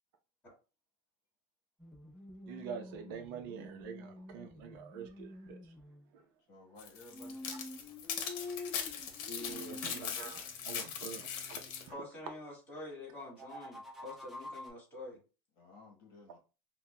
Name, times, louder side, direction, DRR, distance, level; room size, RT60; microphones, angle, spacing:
sound 1, 1.8-6.1 7.1-12.0 13.1-14.7, left 2 dB, ahead, 0.8 m, -48 dB
voice 1, 2.5-5.7 6.1-6.2 9.5-11.9, right 7 dB, 70° right, 0.7 m, -46 dB
voice 2, 6.5-7.4 15.6-16.4, left 2 dB, 35° left, 1.2 m, -55 dB
sound 2, 6.8-11.9, left 7 dB, 60° left, 0.8 m, -40 dB
voice 3, 9.3-9.8 11.9-15.2, left 1 dB, 15° left, 2.0 m, -46 dB
5.7 x 2.3 x 2.2 m
cardioid pair, 170°, 12 cm